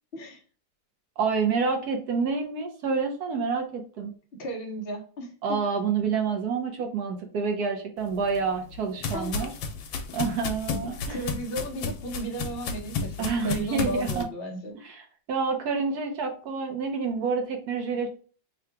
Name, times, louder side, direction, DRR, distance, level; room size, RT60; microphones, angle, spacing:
voice 1, 1.2-4.1 5.4-9.5 10.1-11.2 13.2-14.2 14.8-15.0 15.3-18.1, right 5 dB, 65° right, 1.1 m, -28 dB
voice 2, 4.4-5.6 9.1-9.5 11.1-14.8, right 1 dB, 45° left, 0.8 m, -34 dB
sound 1, 8.1-14.2, left 4 dB, 85° left, 1.4 m, -33 dB
3.8 x 2.3 x 4.5 m
omnidirectional pair, 2.0 m